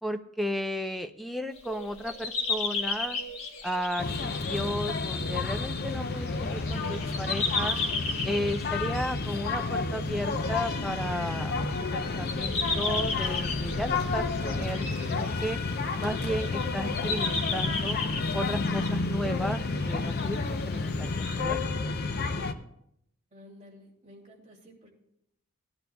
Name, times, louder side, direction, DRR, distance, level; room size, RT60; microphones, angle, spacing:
voice 1, 0.0-3.2 3.6-7.8 8.2-11.6 11.9-15.6 16.0-18.0 18.3-20.4 20.7-21.6, equal, ahead, 7 dB, 0.4 m, -34 dB
sound 1, 1.5-16.7 16.9-18.9 19.4-21.4, left 3 dB, 65° left, 1.6 m, -35 dB
sound 2, 4.0-22.5, left 3 dB, 45° left, 0.6 m, -30 dB
voice 2, 23.3-24.9, left 1 dB, 30° right, -2 dB, 2.6 m, -52 dB
17.5 x 10.5 x 2.3 m, 0.76 s
head